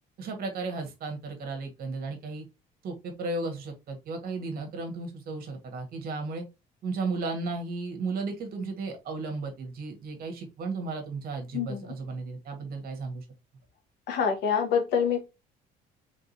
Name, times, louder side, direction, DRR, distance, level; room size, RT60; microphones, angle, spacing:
voice 1, 0.2-2.4 2.8-6.4 6.8-13.2, right 3 dB, 60° right, 1.6 m, -34 dB
voice 2, 14.1-15.3, left 7 dB, 80° left, 1.4 m, -26 dB
3.7 x 3.7 x 2.7 m
cardioid pair, 110°, 17 cm